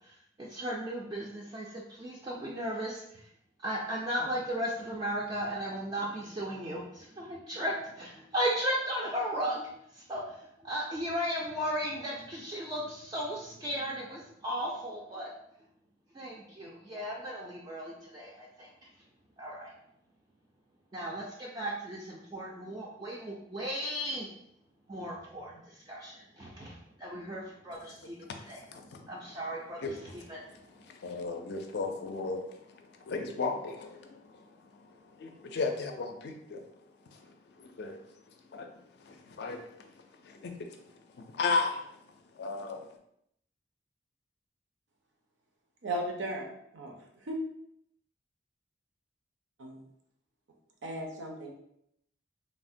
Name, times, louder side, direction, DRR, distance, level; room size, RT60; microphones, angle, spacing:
voice 1, 0.0-3.3 3.6-15.3 16.1-18.9 19.4-19.7 20.9-24.3 24.9-28.6 29.1-30.4, equal, 25° right, -4 dB, 0.3 m, -36 dB
voice 2, 30.9-32.4 33.1-34.4 35.2-36.6 37.6-38.0 38.5-38.7 39.0-39.7 40.2-40.7 41.3-41.8 42.4-42.8, left 4 dB, 60° left, 5 dB, 0.4 m, -34 dB
voice 3, 45.8-46.5 46.7-46.9 47.2-47.4 49.6-49.8 50.8-51.5, right 1 dB, 80° right, 1 dB, 0.6 m, -35 dB
3.3 x 2.1 x 2.5 m, 0.75 s
head